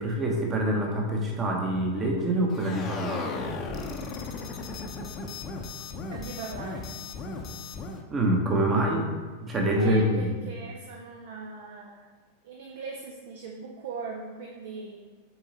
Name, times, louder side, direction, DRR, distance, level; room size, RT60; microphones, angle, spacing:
voice 1, 0.0-3.4 8.1-9.1 9.4-10.3, right 1 dB, 20° right, 0 dB, 1.1 m, -25 dB
sound 1, 2.5-8.0, left 4 dB, 30° left, 0.7 m, -36 dB
voice 2, 6.1-6.9 9.8-12.1 12.4-15.0, right 4 dB, 55° right, 1 dB, 0.7 m, -40 dB
7.0 x 3.8 x 4.1 m, 1.4 s
figure-of-eight pair, 90°, 0 cm